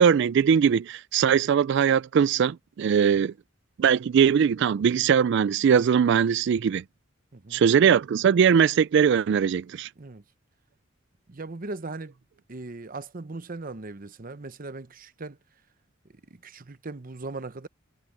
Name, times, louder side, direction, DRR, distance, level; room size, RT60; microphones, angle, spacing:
voice 1, 0.0-3.3 3.8-6.8 7.5-9.9, right 7 dB, 60° right, 0.3 m, -21 dB
voice 2, 7.3-7.6 10.0-10.2 11.3-12.2 12.5-15.4 16.3-17.7, right 3 dB, 45° right, 0.9 m, -39 dB
head